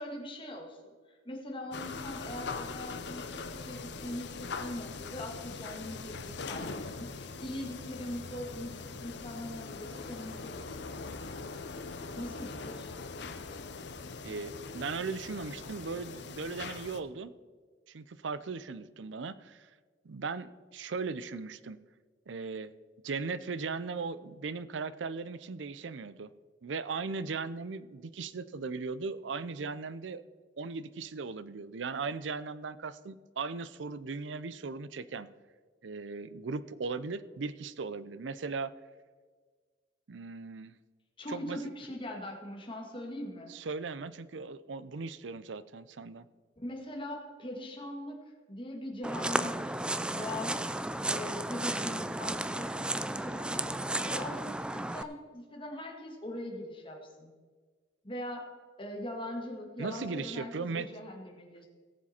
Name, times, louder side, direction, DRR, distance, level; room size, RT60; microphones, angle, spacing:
voice 1, 0.0-11.3 12.2-12.9 41.2-43.5 46.6-48.2 48.5-50.7 51.1-57.3 58.0-58.5 58.8-61.7, left 1 dB, 30° left, 0 dB, 1.9 m, -41 dB
sound 1, 1.7-17.0, left 4 dB, 65° left, 0.7 m, -42 dB
voice 2, 14.2-17.3 17.9-19.7 20.0-21.8 22.3-22.7 23.0-26.3 26.6-30.2 30.6-35.3 35.8-38.7 40.1-40.7 41.3-41.6 43.5-46.3 59.8-60.9, right 4 dB, 80° right, 16 dB, 0.5 m, -38 dB
sound 2, 49.0-55.0, right 1 dB, 5° right, 0.3 m, -33 dB
17.0 x 7.3 x 4.4 m, 1.5 s
head